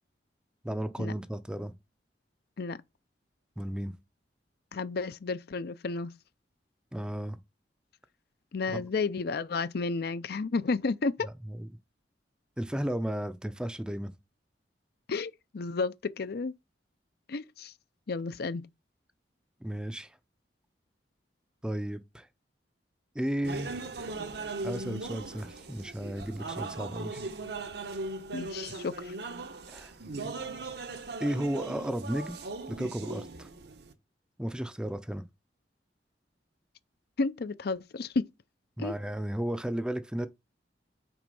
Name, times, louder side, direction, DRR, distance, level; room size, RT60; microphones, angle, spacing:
voice 1, 0.6-1.7 3.6-4.0 6.9-7.4 8.7-8.8 11.2-11.7 12.6-14.2 19.6-20.2 21.6-22.3 23.1-23.9 24.6-27.2 29.7-29.9 31.2-32.4 32.7-33.5 34.4-35.2 38.8-40.3, right 1 dB, 5° right, 0.5 m, -34 dB
voice 2, 4.7-6.1 8.5-11.3 15.1-16.5 17.3-17.7 18.1-18.7 28.3-29.1 37.2-38.3 38.8-38.9, left 4 dB, 60° left, 0.5 m, -32 dB
sound 1, 23.4-33.9, right 3 dB, 65° right, 1.0 m, -39 dB
6.1 x 4.4 x 5.4 m
head